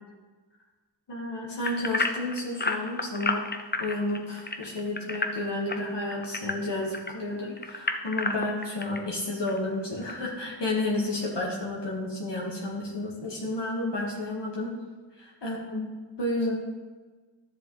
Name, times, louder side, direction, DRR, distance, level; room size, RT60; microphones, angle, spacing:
voice 1, 1.1-3.5 3.8-14.7 15.2-15.9 16.2-16.6, left 2 dB, 70° left, -4 dB, 1.9 m, -31 dB
sound 1, 1.6-7.1 7.6-9.0 9.5-9.6 10.1-10.2, left 3 dB, 25° left, 0.7 m, -30 dB
11.0 x 7.0 x 3.3 m, 1.3 s
cardioid pair, 40°, 43 cm